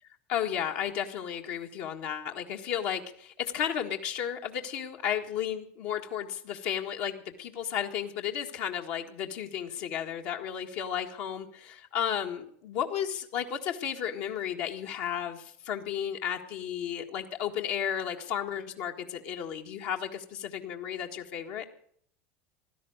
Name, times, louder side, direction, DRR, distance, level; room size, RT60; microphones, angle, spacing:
voice 1, 0.3-21.6, left 9 dB, 65° left, 3 dB, 1.7 m, -33 dB
16.0 x 12.5 x 6.5 m, 0.63 s
supercardioid pair, 125°, 7 cm